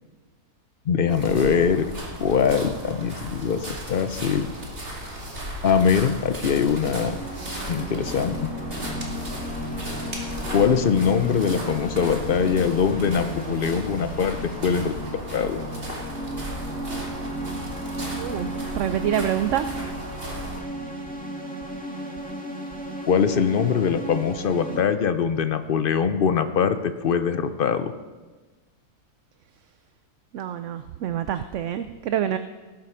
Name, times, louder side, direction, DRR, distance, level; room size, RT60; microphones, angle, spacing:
voice 1, 0.9-1.8 2.2-4.5 5.6-7.2 7.7-8.5 10.5-14.9 15.3-15.6 23.1-27.9, left 6 dB, 55° left, 10 dB, 0.6 m, -22 dB
Snow footsteps close perspective, 1.1-20.6, equal, 40° right, 2.6 m, -35 dB
sound 1, 6.9-24.8, equal, 5° left, 1.6 m, -35 dB
voice 2, 18.2-19.7 30.3-32.4, right 10 dB, 65° right, 10 dB, 0.8 m, -26 dB
18.5 x 7.7 x 5.6 m, 1.3 s
omnidirectional pair, 1.6 m